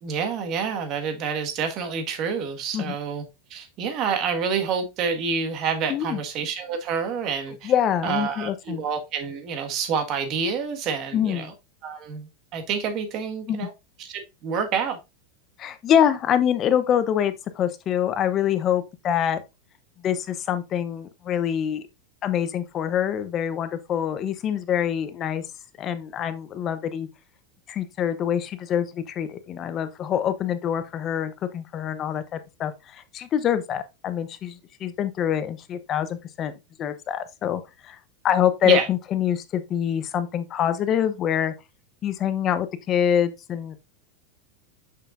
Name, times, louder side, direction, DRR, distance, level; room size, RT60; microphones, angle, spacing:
voice 1, 0.0-3.2 3.5-7.7 8.0-11.5 11.8-13.7 14.0-15.0 38.6-38.9, right 6 dB, 40° right, 1.6 m, -28 dB
voice 2, 5.9-6.2 7.6-8.8 11.1-11.5 13.5-13.7 15.6-19.4 20.0-21.8 22.2-25.4 25.8-27.1 27.7-36.5 36.8-38.0 38.2-41.5 42.0-43.8, left 9 dB, 30° left, 0.8 m, -25 dB
6.6 x 5.7 x 2.5 m
supercardioid pair, 135°, 0 cm